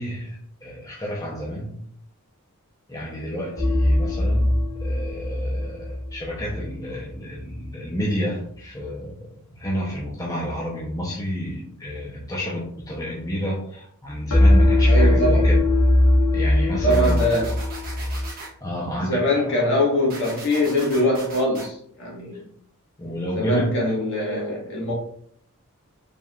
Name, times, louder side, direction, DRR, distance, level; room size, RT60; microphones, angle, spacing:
voice 1, 0.0-1.8 2.9-9.2 9.5-15.6 16.3-17.3 18.6-19.2 23.0-23.8, equal, 15° left, -4 dB, 0.6 m, -30 dB
sound 1, 3.6-6.7 14.3-18.3, left 1 dB, 90° left, 1.3 m, -20 dB
voice 2, 14.9-15.5 16.8-17.6 19.0-22.4 23.4-24.9, left 1 dB, 55° left, -3 dB, 1.5 m, -23 dB
sound 2, 16.9-18.5 20.1-21.7, right 3 dB, 40° right, 1.2 m, -38 dB
4.5 x 3.5 x 2.4 m, 0.63 s
head